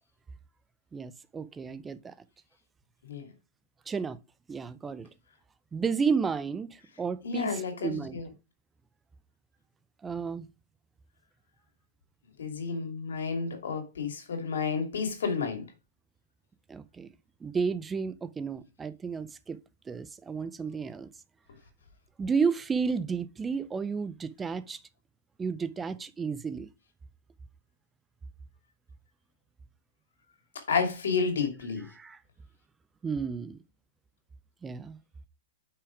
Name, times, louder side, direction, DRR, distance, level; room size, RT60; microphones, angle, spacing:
voice 1, 0.9-2.1 3.9-4.2 4.5-5.1 5.7-8.2 10.0-10.5 16.7-17.1 17.4-19.6 19.9-21.1 22.2-24.8 25.4-26.7 31.9-32.2 33.0-33.6 34.6-35.0, right 5 dB, 15° right, 0.5 m, -32 dB
voice 2, 7.2-8.2 12.4-15.6 30.7-31.9, left 5 dB, 85° left, 2.3 m, -31 dB
5.8 x 5.0 x 4.9 m
hypercardioid pair, 130°, 0 cm